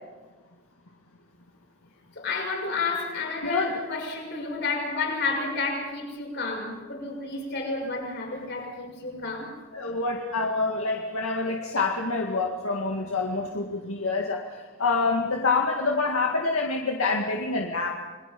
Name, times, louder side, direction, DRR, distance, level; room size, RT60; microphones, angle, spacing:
voice 1, 2.1-9.5, left 3 dB, 55° left, 0 dB, 6.6 m, -31 dB
voice 2, 9.7-18.0, left 3 dB, 80° left, 1 dB, 2.0 m, -27 dB
29.5 x 21.0 x 5.4 m, 1.3 s
head